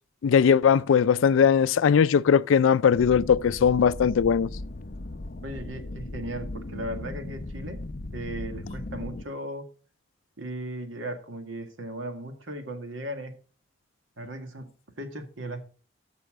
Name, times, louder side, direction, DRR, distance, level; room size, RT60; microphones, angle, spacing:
voice 1, 0.2-4.5, left 7 dB, 90° left, 0.4 m, -20 dB
sound 1, 2.9-9.2, left 2 dB, 45° left, 0.6 m, -37 dB
voice 2, 5.4-7.8 8.1-9.7 10.4-13.3 14.2-14.7 15.0-15.6, right 1 dB, 85° right, 1.8 m, -36 dB
14.0 x 5.5 x 5.0 m
head